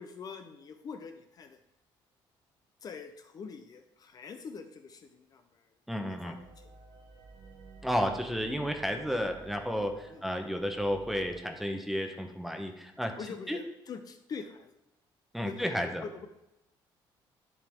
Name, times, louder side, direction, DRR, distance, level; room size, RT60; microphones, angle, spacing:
voice 1, 0.0-1.6 2.8-5.8 6.1-6.7 10.1-10.2 13.2-14.8 15.4-16.3, left 5 dB, 45° left, 7 dB, 0.6 m, -44 dB
voice 2, 5.9-6.3 7.8-13.1 13.5-13.6 15.3-16.0, equal, ahead, 5 dB, 0.9 m, -32 dB
sound 1, 6.3-11.4, right 4 dB, 50° right, 1.0 m, -52 dB
11.0 x 4.8 x 3.6 m, 0.88 s
cardioid pair, 115°, 9 cm